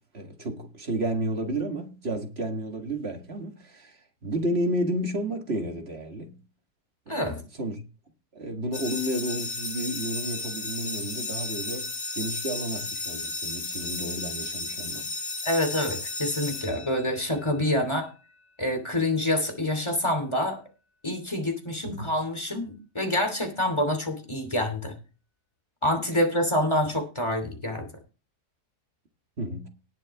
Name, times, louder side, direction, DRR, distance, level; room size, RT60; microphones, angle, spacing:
voice 1, 0.1-3.9 4.2-6.4 7.1-7.2 7.6-7.8 8.3-11.9 12.1-15.1 21.8-22.1 29.4-29.7, right 1 dB, 40° right, 2.1 m, -31 dB
voice 2, 7.1-7.4 15.4-18.1 18.6-20.6 21.0-24.9 25.8-27.9, left 1 dB, 15° left, 2.8 m, -27 dB
sound 1, 8.7-17.4, left 3 dB, 40° left, 1.2 m, -34 dB
19.0 x 6.8 x 3.6 m
omnidirectional pair, 1.8 m